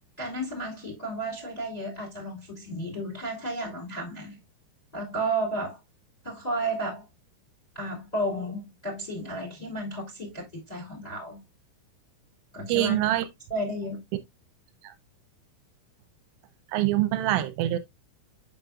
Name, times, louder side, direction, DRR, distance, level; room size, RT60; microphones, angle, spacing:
voice 1, 0.2-4.4 4.9-5.8 6.2-7.0 7.7-11.4 12.5-13.1 13.5-14.0, right 1 dB, 10° left, 2.2 m, -33 dB
voice 2, 12.7-13.3 16.7-17.8, right 14 dB, 80° right, 3.2 m, -24 dB
7.9 x 7.2 x 2.4 m
omnidirectional pair, 5.7 m